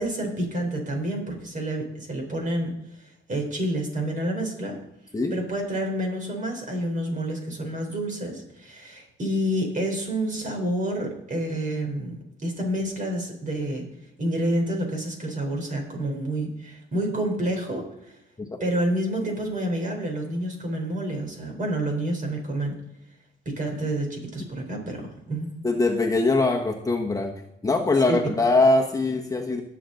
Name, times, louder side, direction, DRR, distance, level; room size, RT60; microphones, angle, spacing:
voice 1, 0.0-2.7 3.0-4.8 5.3-12.1 12.4-13.8 14.2-17.8 18.6-22.7 23.6-25.5 28.1-28.2, right 1 dB, 40° right, 2 dB, 4.2 m, -28 dB
voice 2, 25.6-27.3 27.6-29.6, left 2 dB, 15° left, 1 dB, 1.3 m, -22 dB
18.5 x 7.0 x 3.9 m, 0.83 s
cardioid pair, 95°, 20 cm